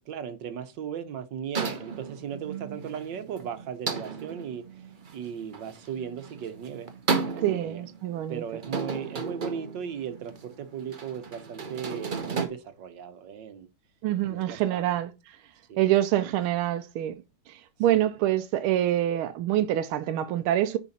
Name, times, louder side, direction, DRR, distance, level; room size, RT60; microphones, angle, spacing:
voice 1, 0.1-4.6 5.1-6.9 7.5-7.8 8.3-13.7 14.2-14.9 15.7-15.9 17.9-18.1, right 8 dB, 65° right, 1.5 m, -37 dB
sound 1, 1.5-12.5, right 4 dB, 50° right, 0.6 m, -34 dB
voice 2, 7.4-8.4 14.0-15.1 15.8-17.2 17.8-20.8, right 12 dB, 90° right, 1.5 m, -25 dB
9.9 x 4.1 x 4.2 m
omnidirectional pair, 2.2 m